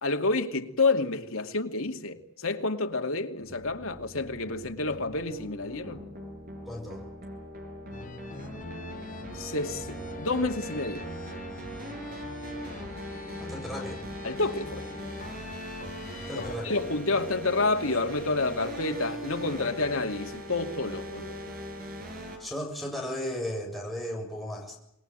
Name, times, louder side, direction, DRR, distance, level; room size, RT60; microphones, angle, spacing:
voice 1, 0.0-6.0 9.3-11.1 14.2-14.9 16.3-21.4, left 3 dB, 85° left, 2.5 m, -29 dB
sound 1, 3.4-22.4, right 1 dB, 45° right, 7.3 m, -40 dB
voice 2, 6.6-7.0 13.4-14.0 16.2-16.8 22.4-24.8, left 1 dB, ahead, 7.2 m, -35 dB
sound 2, 7.9-16.6, left 3 dB, 40° left, 1.2 m, -43 dB
27.5 x 21.0 x 9.1 m
head